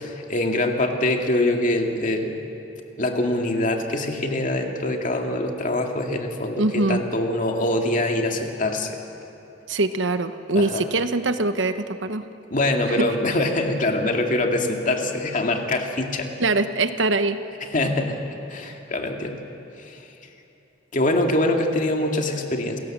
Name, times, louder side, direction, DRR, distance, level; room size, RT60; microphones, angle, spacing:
voice 1, 0.0-2.4 3.0-9.0 10.6-10.8 12.5-16.3 17.7-18.2 18.5-19.4 19.8-20.0 20.9-22.8, left 1 dB, 45° left, 3 dB, 2.2 m, -24 dB
voice 2, 6.6-7.0 9.7-12.2 12.9-13.1 16.4-17.4, right 2 dB, 85° right, 10 dB, 1.1 m, -23 dB
29.0 x 17.0 x 7.4 m, 2.9 s
head